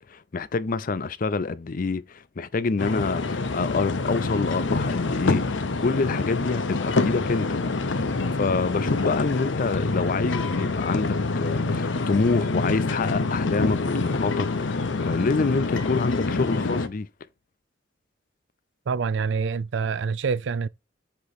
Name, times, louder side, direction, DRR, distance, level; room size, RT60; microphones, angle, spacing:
voice 1, 0.0-7.6 7.9-8.0 8.4-17.1, left 4 dB, 50° left, 0.5 m, -27 dB
sound 1, 2.8-16.9, left 3 dB, 90° left, 0.8 m, -26 dB
voice 2, 18.9-20.7, right 5 dB, 75° right, 0.4 m, -26 dB
8.1 x 3.0 x 4.1 m
head